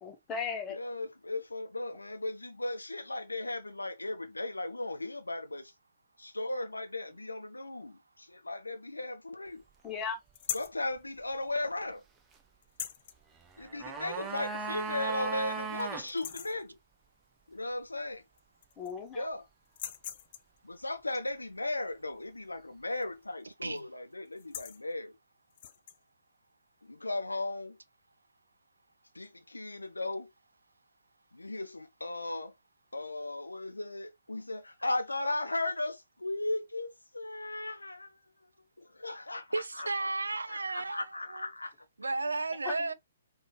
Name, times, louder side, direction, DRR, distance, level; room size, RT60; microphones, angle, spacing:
voice 1, 0.0-0.8 9.8-10.2 18.8-19.3 42.6-42.9, left 6 dB, 20° left, 1.1 m, -37 dB
voice 2, 0.7-5.7 6.2-9.6 10.5-12.0 13.6-16.8 17.5-18.2 19.1-19.5 20.6-25.2 26.8-27.8 29.1-30.3 31.3-32.5 32.9-38.2 38.8-40.1 40.5-41.7, left 2 dB, 80° left, 0.8 m, -36 dB
sound 1, 10.3-10.8 12.6-13.2 14.5-14.6 15.1-15.2 15.6-16.6 18.0-18.1 18.4-19.1 19.7-20.6 22.9-23.2 23.5-23.8 24.3-24.8 25.5-26.0, left 10 dB, 40° left, 0.5 m, -41 dB
sound 2, 13.5-16.1 16.3-16.4, right 5 dB, 15° right, 0.7 m, -37 dB
voice 3, 39.5-41.5 42.0-42.9, right 3 dB, 75° right, 0.5 m, -34 dB
5.1 x 2.8 x 2.9 m
figure-of-eight pair, 125°, 0 cm